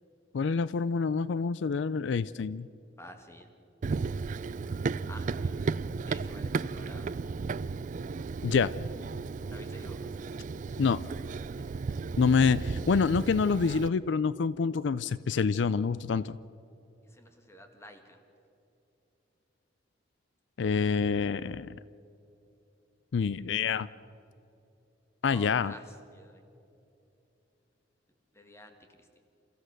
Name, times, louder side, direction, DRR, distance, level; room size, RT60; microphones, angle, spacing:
voice 1, 0.3-2.7 8.4-8.7 10.8-11.0 12.2-16.4 20.6-21.7 23.1-23.9 25.2-25.7, left 5 dB, 70° left, 17 dB, 0.4 m, -27 dB
voice 2, 3.0-3.5 5.1-5.6 6.1-7.2 9.5-10.1 11.6-11.8 12.3-12.4 17.0-18.2 25.3-26.4 28.3-29.2, equal, 15° left, 5 dB, 2.0 m, -51 dB
Run, 3.8-13.9, right 4 dB, 45° right, 0.4 m, -34 dB
29.0 x 14.5 x 6.5 m, 2.8 s
head